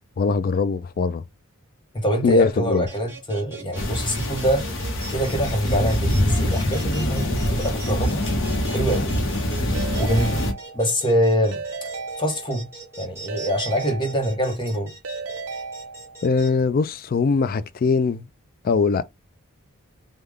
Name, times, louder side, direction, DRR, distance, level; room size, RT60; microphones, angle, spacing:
voice 1, 0.2-1.2 2.2-2.9 16.2-18.3 18.6-19.0, left 4 dB, 45° left, 0.3 m, -21 dB
voice 2, 1.9-4.7 5.1-8.2 8.7-9.2 10.0-10.4 10.7-11.9 12.2-12.7 13.0-14.9, equal, 20° left, 0.9 m, -24 dB
sound 1, 2.9-16.5, right 2 dB, 10° right, 1.3 m, -40 dB
sound 2, 3.7-10.5, left 1 dB, 60° left, 0.9 m, -24 dB
Keyboard (musical) / Ringtone, 9.7-11.1 11.5-12.8 13.3-14.6 15.0-16.4, right 4 dB, 85° right, 0.6 m, -35 dB
3.6 x 2.3 x 3.2 m
head